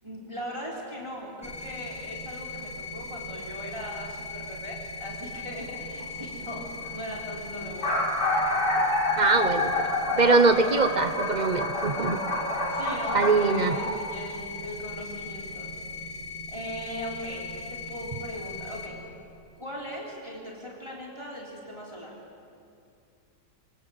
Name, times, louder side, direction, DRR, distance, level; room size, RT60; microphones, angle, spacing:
voice 1, 0.0-6.6 6.9-8.0 12.7-15.7 16.5-19.0 19.6-22.2, equal, 15° right, -3 dB, 4.0 m, -39 dB
sound 1, 1.4-18.9, left 3 dB, 5° left, 3.1 m, -39 dB
sound 2, 5.7-6.0 6.9-7.0 7.1-7.2 7.6-14.0, left 1 dB, 65° left, 5.7 m, -28 dB
voice 2, 9.2-12.2 13.1-13.8, right 4 dB, 30° right, 11 dB, 0.9 m, -23 dB
26.5 x 25.0 x 7.9 m, 2.5 s
omnidirectional pair, 1.9 m